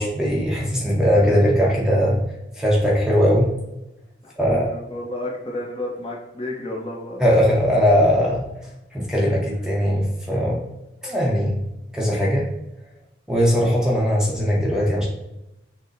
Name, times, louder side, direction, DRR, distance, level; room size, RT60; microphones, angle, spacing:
voice 1, 0.0-2.2 2.6-3.5 4.4-4.7 7.2-8.5 8.9-10.6 11.0-11.6 11.9-12.5 13.3-15.0, equal, 5° right, -4 dB, 0.8 m, -19 dB
voice 2, 4.4-7.3 10.3-10.4, left 1 dB, 30° left, -2 dB, 0.9 m, -31 dB
6.2 x 2.2 x 3.9 m, 0.94 s
head